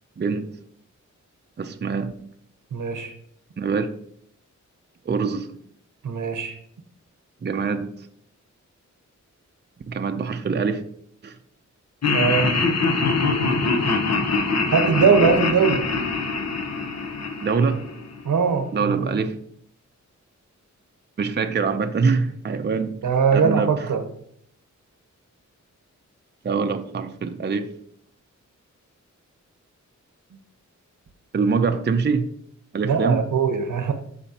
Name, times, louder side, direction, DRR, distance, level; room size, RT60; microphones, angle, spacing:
voice 1, 1.6-2.3 3.6-3.9 5.1-5.6 7.4-8.1 9.9-10.8 11.2-11.4 17.4-17.9 18.7-19.4 21.2-23.0 23.3-23.9 26.4-27.7 31.3-32.3 32.7-33.3, right 5 dB, 35° right, 7 dB, 0.6 m, -24 dB
voice 2, 2.7-3.1 6.0-6.6 12.1-12.5 14.7-15.8 18.2-19.1 23.0-24.0 32.8-33.9, right 5 dB, 90° right, 7 dB, 1.0 m, -21 dB
Laughter, 12.0-18.2, left 3 dB, 60° left, 1.0 m, -23 dB
12.5 x 4.3 x 2.9 m, 0.65 s
wide cardioid pair, 110°, 30 cm